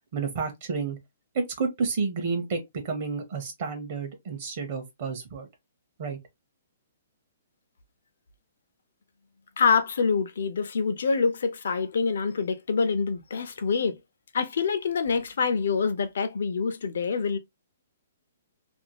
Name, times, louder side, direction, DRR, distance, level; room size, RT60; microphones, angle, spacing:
voice 1, 0.1-1.0 1.3-5.5 6.0-6.2, right 4 dB, 40° right, 0.7 m, -30 dB
voice 2, 9.6-14.0 14.3-17.4, left 5 dB, 65° left, 0.6 m, -26 dB
2.5 x 2.4 x 2.9 m
hypercardioid pair, 170°, 0 cm